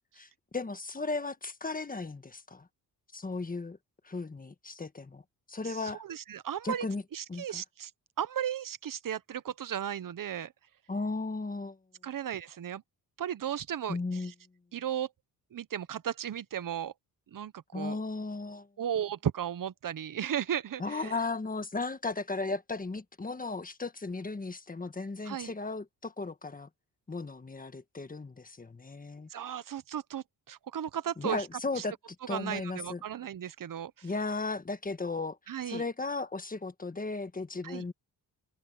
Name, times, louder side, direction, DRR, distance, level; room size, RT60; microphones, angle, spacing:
voice 1, 0.2-2.7 3.1-3.8 4.0-5.2 5.5-6.0 6.6-7.0 7.3-7.6 10.9-11.8 13.9-14.3 17.7-18.7 20.8-26.7 27.1-29.3 31.2-31.9 32.3-33.0 34.0-35.4 35.7-37.9, left 3 dB, 20° left, 1.6 m, -35 dB
voice 2, 5.7-6.9 7.1-7.9 8.2-10.5 12.0-12.8 13.2-14.2 14.7-15.1 15.5-16.9 17.3-18.0 18.8-21.2 25.3-25.5 29.3-31.5 31.8-31.9 32.3-34.1 35.5-35.8 37.6-37.8, right 9 dB, 55° right, 1.0 m, -35 dB
cardioid pair, 90°, 39 cm